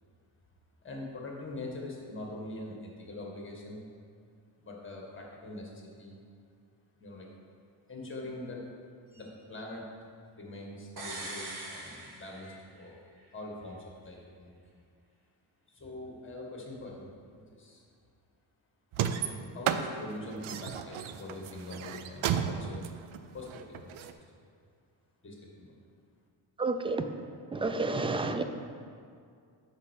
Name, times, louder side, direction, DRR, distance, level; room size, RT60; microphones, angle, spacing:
voice 1, 0.8-3.8 4.6-6.1 7.0-7.3 7.9-8.7 9.1-9.8 10.4-13.0 13.3-14.5 15.7-17.8 19.3-22.9 23.3-24.1 25.2-25.7, left 2 dB, 25° left, -2 dB, 1.8 m, -43 dB
sound 1, 11.0-12.9 13.2-13.3, right 2 dB, 50° right, 1.5 m, -42 dB
sound 2, 18.9-24.1, right 9 dB, 85° right, 0.6 m, -33 dB
voice 2, 26.6-27.1 27.5-28.4, right 3 dB, 15° right, 8 dB, 0.3 m, -30 dB
7.5 x 5.7 x 6.4 m, 2.2 s
wide cardioid pair, 135°, 47 cm